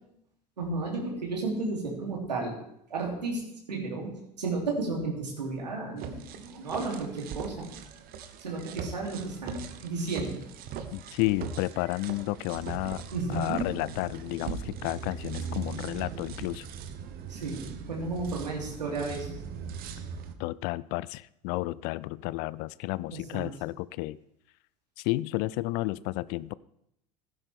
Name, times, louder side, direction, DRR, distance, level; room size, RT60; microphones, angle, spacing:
voice 1, 0.6-2.6 2.9-3.4 3.7-7.7 8.4-10.4 13.1-13.6 17.3-19.3 23.1-23.5, right 3 dB, 80° right, -1 dB, 3.0 m, -33 dB
sound 1, 6.0-20.4, right 6 dB, 45° right, 1.1 m, -40 dB
voice 2, 10.9-13.0 13.3-16.7 20.4-24.2 25.0-26.5, left 19 dB, 45° left, 20 dB, 0.4 m, -32 dB
16.0 x 10.0 x 3.5 m, 0.76 s
figure-of-eight pair, 75°, 21 cm